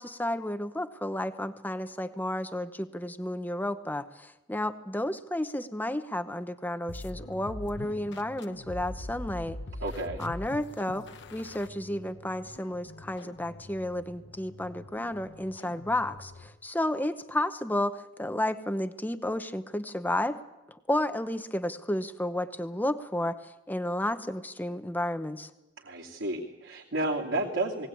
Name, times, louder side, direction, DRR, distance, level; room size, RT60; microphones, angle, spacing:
voice 1, 0.0-9.6 10.2-20.4 20.7-23.4 23.7-25.5, left 1 dB, 10° left, 10 dB, 0.9 m, -32 dB
sound 1, 6.9-16.6, left 2 dB, 60° left, 0.9 m, -43 dB
voice 2, 9.8-10.2 25.8-27.9, right 2 dB, 70° right, -5 dB, 2.8 m, -31 dB
21.0 x 18.0 x 8.7 m, 0.99 s
head